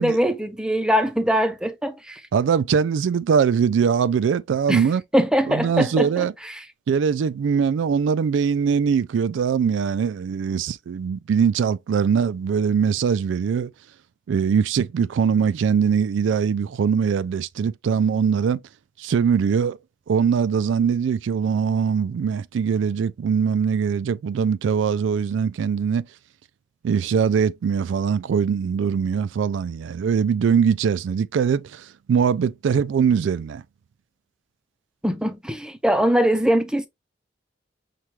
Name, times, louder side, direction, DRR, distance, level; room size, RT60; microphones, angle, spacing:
voice 1, 0.0-2.2 4.7-4.8 5.1-6.6 35.0-36.9, equal, 5° right, 0.5 m, -22 dB
voice 2, 2.3-5.0 5.5-6.3 6.9-13.7 14.3-18.6 19.0-19.8 20.1-26.1 26.8-33.6, right 6 dB, 80° right, 0.3 m, -22 dB
5.8 x 2.3 x 3.1 m
head